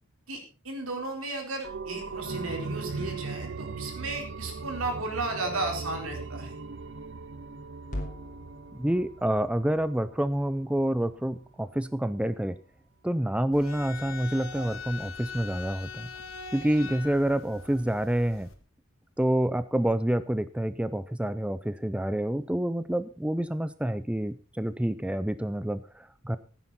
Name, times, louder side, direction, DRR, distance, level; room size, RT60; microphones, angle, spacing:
voice 1, 0.3-6.5, right 2 dB, 85° right, 3 dB, 4.2 m, -34 dB
sound 1, 1.6-11.0 11.4-11.5, right 4 dB, 60° right, 0.7 m, -39 dB
sound 2, 7.9-12.2, left 1 dB, 40° left, 3.1 m, -44 dB
voice 2, 8.7-12.6 13.0-16.1 16.5-18.5 19.2-26.4, right 1 dB, 5° right, 14 dB, 0.5 m, -28 dB
sound 3, 13.5-18.6, left 5 dB, 75° left, 2.1 m, -42 dB
15.5 x 9.7 x 4.2 m, 0.34 s
head